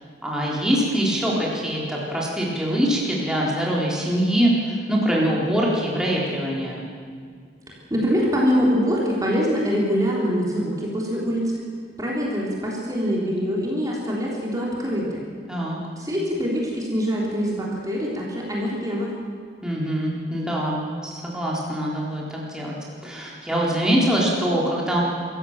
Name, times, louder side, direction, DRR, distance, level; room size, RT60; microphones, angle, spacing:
voice 1, 0.2-6.8 15.5-15.8 19.6-22.8 23.0-25.0, equal, 5° right, -4 dB, 4.0 m, -23 dB
voice 2, 7.7-11.6 12.0-15.2 16.0-19.1, equal, 20° right, -3 dB, 3.9 m, -24 dB
27.0 x 15.5 x 7.5 m, 2.1 s
head